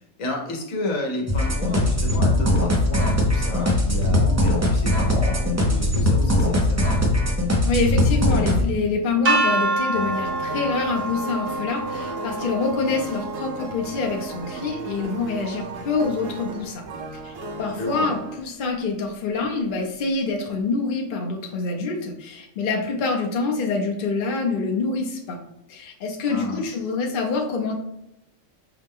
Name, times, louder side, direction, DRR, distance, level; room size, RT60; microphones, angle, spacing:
voice 1, 0.2-7.0 17.8-18.1 26.3-26.7, left 2 dB, 80° left, 1 dB, 1.3 m, -32 dB
sound 1, 1.3-8.6, left 1 dB, 25° right, 0.4 m, -20 dB
voice 2, 7.6-16.9 17.2-17.3 17.6-25.4 25.7-27.7, left 4 dB, 50° left, 1 dB, 0.8 m, -26 dB
sound 2, 9.3-15.2, right 2 dB, 60° right, 1.4 m, -27 dB
sound 3, 9.9-18.4, right 3 dB, 85° right, 1.0 m, -35 dB
5.8 x 2.1 x 3.5 m, 0.81 s
omnidirectional pair, 1.4 m